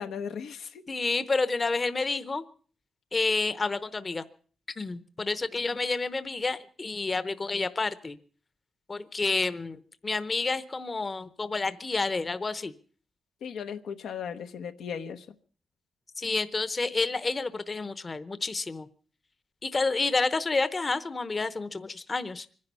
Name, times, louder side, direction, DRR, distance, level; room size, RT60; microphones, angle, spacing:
voice 1, 0.0-0.8 13.4-15.3, left 7 dB, 85° left, 7 dB, 0.9 m, -36 dB
voice 2, 0.9-2.4 3.1-4.2 4.8-8.2 8.9-12.7 16.2-18.9 19.6-22.5, left 3 dB, 30° left, 14 dB, 0.8 m, -29 dB
24.5 x 10.5 x 5.5 m, 0.43 s
cardioid pair, 105°, 0 cm